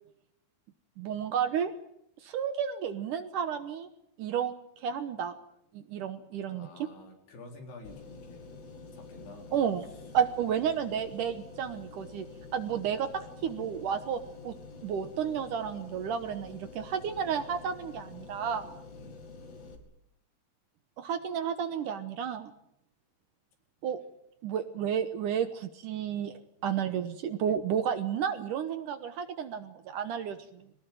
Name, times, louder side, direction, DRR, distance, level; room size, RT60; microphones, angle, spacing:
voice 1, 1.0-1.7 2.2-3.9 4.2-5.3 5.7-6.7 9.5-12.3 12.5-13.1 13.4-14.5 14.8-18.7 21.0-22.5 23.8-24.0 24.4-30.6, right 8 dB, 70° right, 10 dB, 2.2 m, -32 dB
voice 2, 6.4-8.5 8.9-9.5 12.7-12.9 19.0-19.3 26.6-26.8, left 2 dB, 80° left, 3 dB, 5.8 m, -50 dB
sound 1, 7.8-19.8, left 4 dB, 45° left, 3.4 m, -48 dB
22.5 x 19.5 x 9.0 m, 0.76 s
omnidirectional pair, 4.6 m